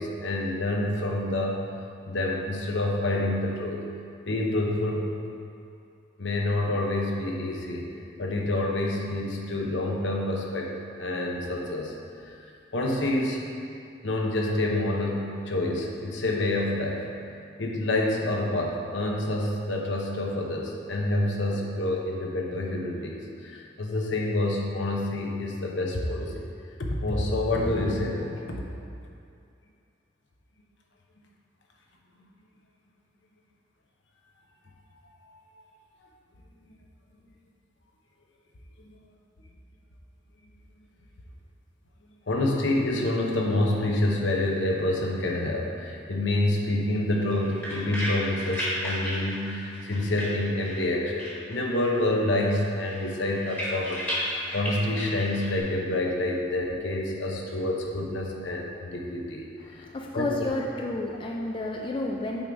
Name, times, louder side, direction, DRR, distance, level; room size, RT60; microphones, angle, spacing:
voice 1, 0.0-1.6 2.0-3.8 4.3-5.1 6.2-7.9 8.2-10.7 11.0-11.9 12.2-12.5 12.7-13.4 14.0-17.1 17.6-26.5 26.8-28.4 35.3-35.4 38.8-38.9 42.3-59.8 60.1-60.3, left 1 dB, 80° left, 0 dB, 0.9 m, -27 dB
sound 1, 47.2-50.9 51.2-52.1 52.3-55.6, equal, 10° left, 1.2 m, -34 dB
voice 2, 59.6-62.4, left 2 dB, 25° left, 0 dB, 0.3 m, -31 dB
7.9 x 3.9 x 4.7 m, 2.4 s
head